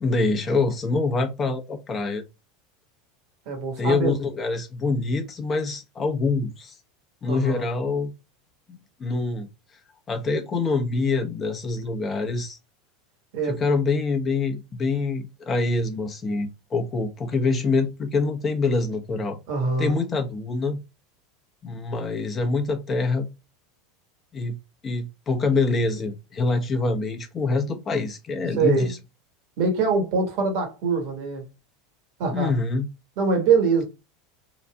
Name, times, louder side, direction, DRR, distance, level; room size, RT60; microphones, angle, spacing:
voice 1, 0.0-2.2 3.8-6.7 7.2-8.1 8.7-9.5 10.1-12.6 13.4-19.4 19.8-20.8 21.6-23.3 24.3-24.6 24.8-29.0 32.3-32.9, left 3 dB, 30° left, 0.8 m, -25 dB
voice 2, 3.5-4.1 7.3-7.7 13.3-13.6 19.5-20.0 28.6-28.9 29.6-31.4 32.2-32.5 33.2-33.8, right 4 dB, 55° right, 1.3 m, -23 dB
4.0 x 2.4 x 2.3 m
hypercardioid pair, 85°, 0 cm